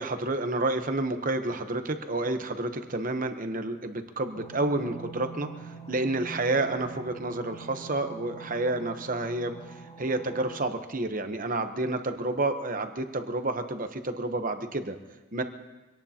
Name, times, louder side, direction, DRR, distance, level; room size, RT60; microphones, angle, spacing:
voice 1, 0.0-15.0 15.3-15.4, right 2 dB, 40° right, 7 dB, 1.0 m, -30 dB
sound 1, 4.3-10.6, right 5 dB, 20° left, 2.6 m, -45 dB
25.0 x 18.0 x 2.9 m, 1.2 s
head